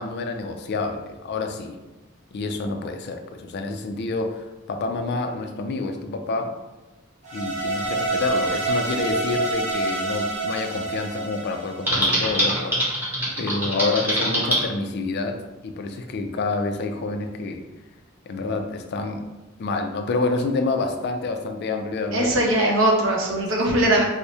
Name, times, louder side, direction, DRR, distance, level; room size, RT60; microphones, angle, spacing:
voice 1, 0.0-1.8 2.3-6.6 7.3-12.8 13.4-17.6 18.3-19.3 19.6-22.3 23.7-23.9, left 3 dB, 55° left, 6 dB, 0.4 m, -28 dB
sound 1, 7.2-12.5, right 2 dB, 35° right, 0.7 m, -27 dB
Typing, 11.9-14.6, equal, 10° right, 0.9 m, -23 dB
voice 2, 22.1-24.0, right 1 dB, 70° right, -1 dB, 0.8 m, -20 dB
4.6 x 2.1 x 2.7 m, 1.1 s
head